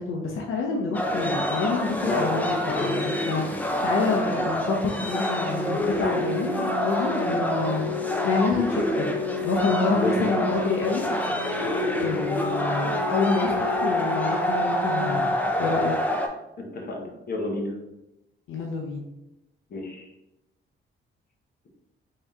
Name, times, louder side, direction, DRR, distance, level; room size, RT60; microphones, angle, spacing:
voice 1, 0.0-3.4 3.8-7.9 8.2-9.1 9.4-11.0 12.0-15.3 15.6-15.9 18.5-19.0, left 4 dB, 80° left, 0 dB, 0.6 m, -27 dB
sound 1, 0.9-16.3, equal, 10° left, 0.4 m, -27 dB
voice 2, 2.0-2.5 9.9-10.1 16.6-17.7 19.7-20.0, left 2 dB, 50° left, 0 dB, 0.9 m, -30 dB
Organ, 5.0-16.0, left 4 dB, 70° right, 0.8 m, -34 dB
3.5 x 2.7 x 3.5 m, 0.91 s
cardioid pair, 130°, 21 cm